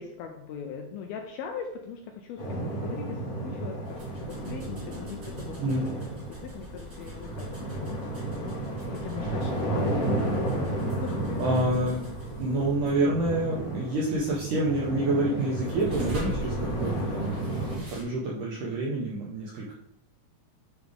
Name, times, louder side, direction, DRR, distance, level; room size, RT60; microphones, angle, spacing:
voice 1, 0.0-5.6 6.0-8.0 8.9-11.8, left 6 dB, 85° left, 3 dB, 2.2 m, -40 dB
sound 1, 2.4-17.8, right 1 dB, 60° left, 0.9 m, -32 dB
sound 2, 3.8-18.0, equal, 45° right, 1.2 m, -43 dB
voice 2, 5.6-6.0 11.4-12.0 12.4-19.7, right 2 dB, 75° right, -4 dB, 1.9 m, -28 dB
10.0 x 3.5 x 3.5 m, 0.71 s
omnidirectional pair, 4.8 m